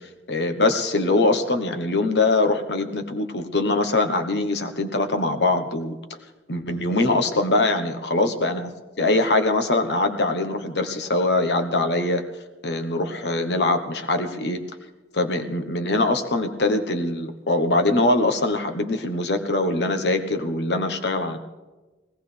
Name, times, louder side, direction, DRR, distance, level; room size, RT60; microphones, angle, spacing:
voice 1, 0.3-5.9 6.5-8.7 9.0-12.2 12.6-14.6 15.1-21.4, left 2 dB, 70° left, 7 dB, 1.1 m, -22 dB
20.0 x 17.5 x 3.4 m, 1.2 s
head